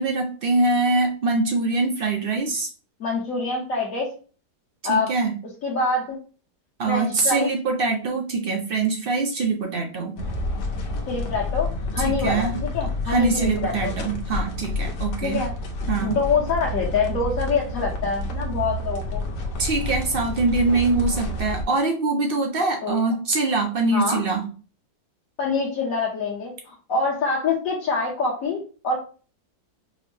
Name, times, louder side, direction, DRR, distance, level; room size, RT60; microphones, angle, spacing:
voice 1, 0.0-2.7 4.9-5.3 6.8-10.1 12.0-12.6 13.1-15.4 15.9-16.2 19.6-24.4, right 3 dB, 60° right, 2 dB, 0.6 m, -23 dB
voice 2, 3.0-4.1 4.8-5.1 5.6-6.2 6.9-7.5 11.1-13.9 15.2-15.5 16.0-19.2 22.8-23.0 23.9-24.2 25.4-29.0, left 4 dB, 60° left, -5 dB, 1.2 m, -25 dB
sound 1, 10.2-21.6, left 1 dB, 85° left, 1.4 m, -29 dB
5.1 x 2.0 x 3.1 m, 0.37 s
omnidirectional pair, 1.7 m